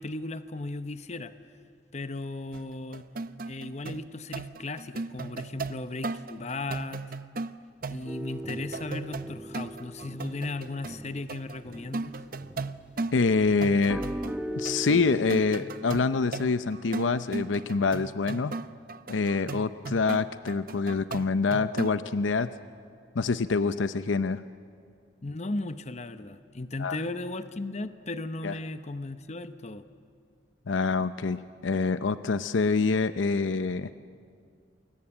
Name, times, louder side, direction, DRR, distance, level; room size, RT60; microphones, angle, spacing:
voice 1, 0.0-1.3 1.9-3.1 3.4-7.0 7.9-12.1 25.2-29.8, left 2 dB, 35° left, 11 dB, 0.8 m, -36 dB
sound 1, 2.5-11.0 11.3-13.3 13.6-14.4 14.7-22.0, right 3 dB, 50° right, 0.7 m, -37 dB
sound 2, 8.1-12.9 13.2-15.6, equal, 5° right, 1.1 m, -38 dB
voice 2, 13.1-14.0 14.6-18.5 19.1-22.5 23.2-24.4 26.8-27.0 28.4-28.5 30.7-33.9, left 4 dB, 90° left, 12 dB, 0.6 m, -26 dB
28.5 x 21.5 x 8.8 m, 2.3 s
head